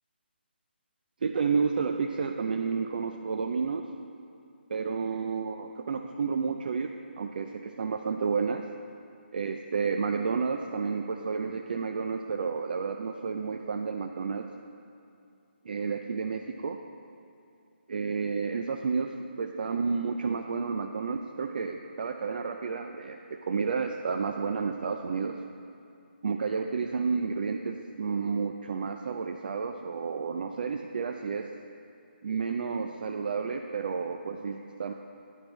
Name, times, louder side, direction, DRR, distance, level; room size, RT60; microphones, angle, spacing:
voice 1, 1.2-3.9 4.7-8.7 9.3-14.5 15.6-16.8 17.9-25.4 26.2-31.5 32.2-34.9, right 5 dB, 50° right, 4 dB, 0.4 m, -31 dB
9.8 x 4.4 x 6.1 m, 2.6 s
figure-of-eight pair, 150°, 6 cm